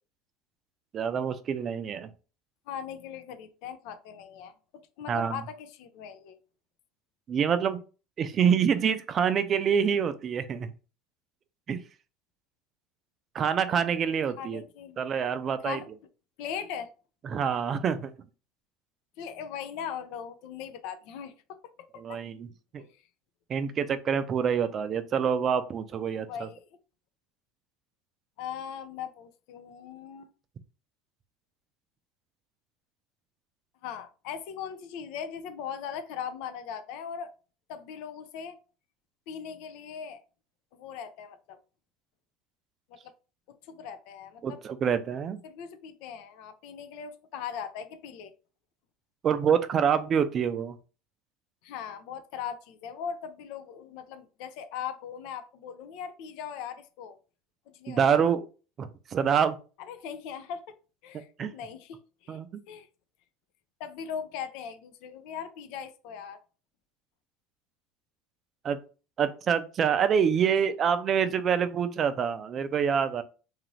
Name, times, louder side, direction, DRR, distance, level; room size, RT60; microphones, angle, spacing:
voice 1, 0.9-2.1 5.1-5.4 7.3-7.8 8.2-10.7 11.7-11.8 13.3-14.6 15.0-15.8 17.3-18.1 22.0-22.5 22.7-22.8 23.5-26.5 44.4-45.4 49.2-50.8 57.9-58.5 58.8-59.6 61.1-61.5 62.3-62.6 68.6-68.8 69.2-73.2, right 7 dB, 40° right, 0.4 m, -26 dB
voice 2, 2.7-4.5 5.0-6.4 14.4-15.0 15.6-15.9 16.4-16.9 19.2-21.6 21.9-22.2 26.1-26.7 28.4-30.3 33.8-37.3 37.7-38.6 39.3-40.2 40.7-41.6 42.9-43.1 43.5-44.6 45.4-48.3 51.6-57.2 57.7-58.2 59.9-60.8 61.0-61.3 61.5-62.4 62.7-62.9 63.8-66.4, left 8 dB, 70° left, 0.4 m, -39 dB
2.7 x 2.5 x 3.1 m
supercardioid pair, 95°, 0 cm